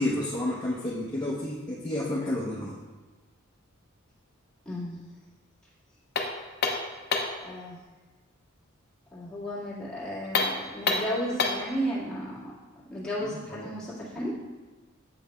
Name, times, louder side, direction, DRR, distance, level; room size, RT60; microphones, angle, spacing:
voice 1, 0.0-2.8 13.5-13.8, left 1 dB, 20° left, -8 dB, 0.8 m, -30 dB
voice 2, 4.7-5.0 7.4-7.8 9.1-12.5 12.9-14.3, equal, 5° left, -10 dB, 1.8 m, -33 dB
sound 1, 6.1-7.4 10.2-11.7, left 4 dB, 50° left, 0.6 m, -28 dB
8.2 x 5.5 x 2.2 m, 1.3 s
head